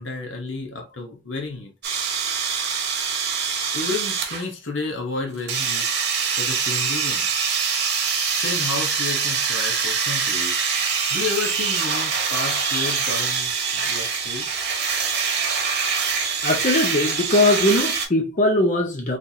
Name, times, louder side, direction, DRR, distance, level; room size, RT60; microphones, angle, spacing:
voice 1, 0.0-1.7 3.7-5.9 6.4-7.3 8.1-10.5 11.1-14.5, left 3 dB, 75° left, 1.0 m, -31 dB
sound 1, 1.8-4.4 5.5-18.1, right 6 dB, 60° right, 1.1 m, -24 dB
voice 2, 16.4-19.2, left 1 dB, 40° left, 0.7 m, -20 dB
4.0 x 3.3 x 2.7 m
head